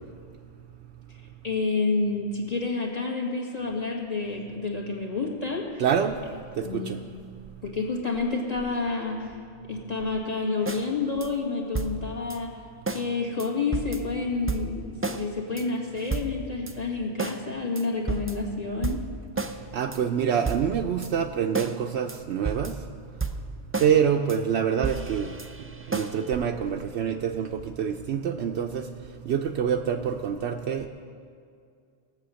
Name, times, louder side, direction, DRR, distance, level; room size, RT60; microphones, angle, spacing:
voice 1, 1.4-5.8 6.6-6.9 7.6-9.3 9.7-12.5 12.9-19.0, left 3 dB, 35° left, -1 dB, 1.9 m, -29 dB
voice 2, 5.8-6.1 6.6-7.0 19.7-22.7 23.8-25.3 25.9-28.9 29.3-30.9, right 8 dB, 80° right, 3 dB, 0.9 m, -26 dB
sound 1, 10.7-10.9 11.2-11.3 11.7-12.4 12.9-13.1 13.4-13.5 13.7-14.1 14.5-15.2 15.6-15.7 15.9-16.7 17.2-17.4 17.8-18.5 18.8-19.6 19.9-20.0 20.3-21.1 21.5-21.8 22.1-22.2 22.5-22.9 23.2-24.0 24.3-24.4 24.8-26.3, right 3 dB, 20° right, 0.3 m, -32 dB
17.5 x 7.6 x 6.3 m, 2.2 s
omnidirectional pair, 1.1 m